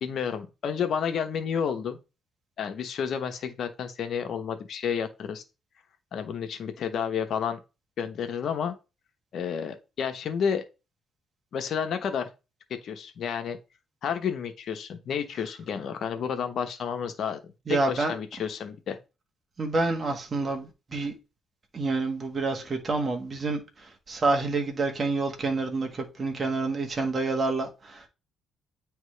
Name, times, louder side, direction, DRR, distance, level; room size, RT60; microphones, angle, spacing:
voice 1, 0.0-2.0 2.6-5.4 6.1-7.6 8.0-8.8 9.3-10.6 11.5-12.3 12.8-13.6 14.0-17.4 17.7-19.0, left 7 dB, 65° left, 1.0 m, -30 dB
voice 2, 17.7-18.1 19.6-21.1 21.7-28.1, right 3 dB, 35° right, 1.5 m, -28 dB
9.2 x 3.5 x 3.3 m
cardioid pair, 90°, 0 cm